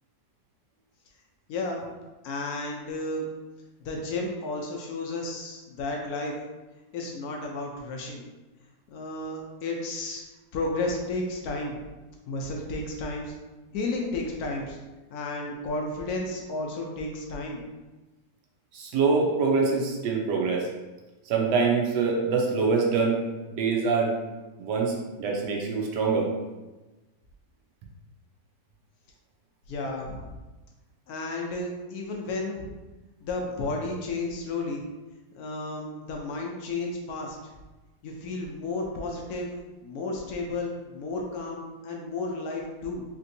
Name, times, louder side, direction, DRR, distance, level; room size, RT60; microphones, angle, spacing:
voice 1, 1.5-1.9 2.2-3.3 3.8-6.3 6.9-8.2 8.9-10.2 10.5-11.8 12.3-13.3 13.7-14.8 15.1-17.6 29.7-30.3 31.1-32.7 33.2-34.9 35.3-37.4 38.0-39.5 39.8-43.0, left 2 dB, 70° left, 0 dB, 1.0 m, -32 dB
voice 2, 18.7-20.7 21.3-23.2 23.5-24.1 24.6-26.3, right 4 dB, 85° right, 0 dB, 1.3 m, -24 dB
3.4 x 2.9 x 2.6 m, 1.2 s
omnidirectional pair, 1.8 m